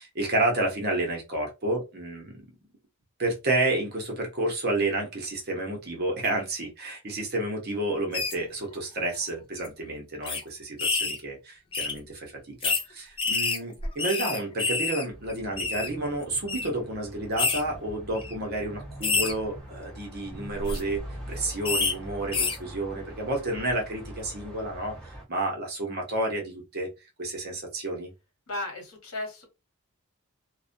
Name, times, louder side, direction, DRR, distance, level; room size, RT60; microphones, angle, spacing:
voice 1, 0.0-2.4 3.2-21.0 21.3-26.9 27.2-28.1, right 2 dB, 45° right, 1 dB, 0.8 m, -30 dB
sound 1, 8.1-8.3 9.1-9.3 9.6-9.7 10.3-10.4 10.8-11.2 11.7-11.9 12.6-12.8 13.2-15.0 15.3-15.9 16.5-16.7 17.4-17.6 18.2-18.3 19.0-19.3 20.5-20.8 21.7-21.9 22.3-22.6, left 4 dB, 25° left, 0.4 m, -27 dB
sound 2, 15.1-25.2, right 1 dB, 5° left, 0.9 m, -43 dB
voice 2, 28.5-29.5, left 2 dB, 85° left, 2 dB, 1.2 m, -35 dB
2.4 x 2.1 x 2.6 m, 0.25 s
head